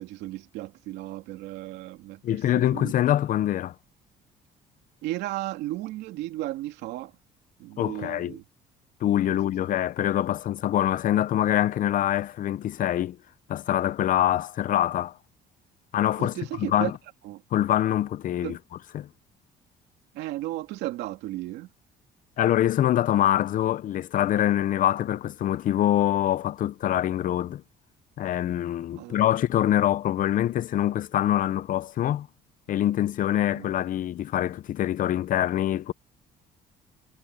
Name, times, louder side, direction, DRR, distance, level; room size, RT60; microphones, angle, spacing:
voice 1, 0.0-2.9 5.0-7.1 7.6-8.4 9.3-9.4 16.2-16.9 17.2-17.4 18.4-18.6 20.1-21.7 29.0-29.2 33.5-33.7, right 16 dB, 90° right, 2.7 m, -34 dB
voice 2, 2.2-3.7 7.8-8.4 9.0-13.2 13.5-15.1 15.9-16.9 17.5-18.6 18.9-19.1 22.4-27.6 28.2-32.3 32.7-35.9, left 12 dB, 55° left, 0.6 m, -24 dB
cardioid pair, 110°, 17 cm